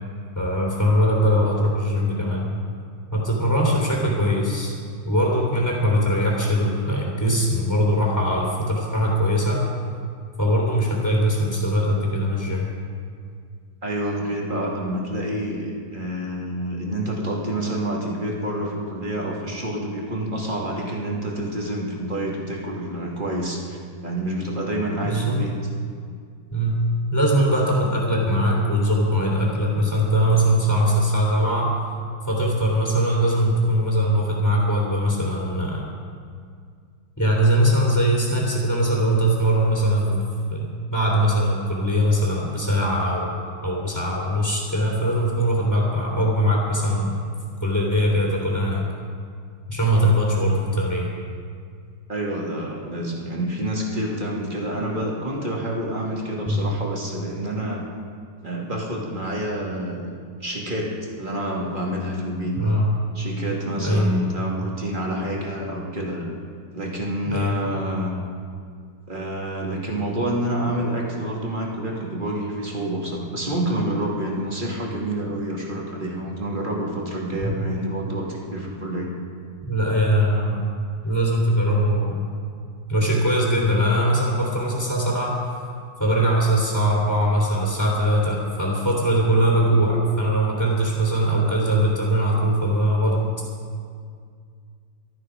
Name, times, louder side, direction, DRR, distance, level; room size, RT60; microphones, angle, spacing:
voice 1, 0.3-2.5 3.1-4.7 5.0-9.6 10.4-12.7 25.0-25.4 26.5-26.8 27.1-31.7 32.3-35.8 37.2-40.2 40.5-43.3 43.6-47.1 47.6-48.8 49.7-51.1 56.5-56.7 62.5-62.9 63.8-64.1 67.2-67.6 77.4-77.5 79.7-80.6 81.0-82.3 82.9-85.4 86.0-93.2, equal, 10° left, -4 dB, 2.9 m, -21 dB
voice 2, 13.8-25.5 52.1-57.9 58.4-60.1 60.4-62.7 63.1-66.3 66.7-68.1 69.1-79.1, right 1 dB, 30° right, -2 dB, 2.4 m, -28 dB
18.5 x 13.0 x 5.0 m, 2.1 s
omnidirectional pair, 1.9 m